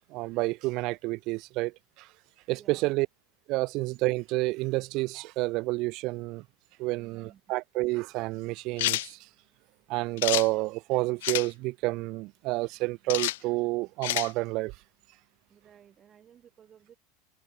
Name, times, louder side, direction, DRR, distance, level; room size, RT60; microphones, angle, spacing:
voice 1, 0.1-2.1 2.5-3.1 3.5-6.4 6.8-9.2 9.9-14.7, right 22 dB, 40° right, 0.5 m, -29 dB
voice 2, 2.5-3.0 6.8-7.4 15.5-17.0, right 9 dB, 20° right, 7.4 m, -56 dB
sound 1, 8.8-9.1 10.2-10.5 11.2-11.5 13.1-13.4 14.0-14.3, left 17 dB, 70° left, 0.6 m, -28 dB
supercardioid pair, 160°, 0 cm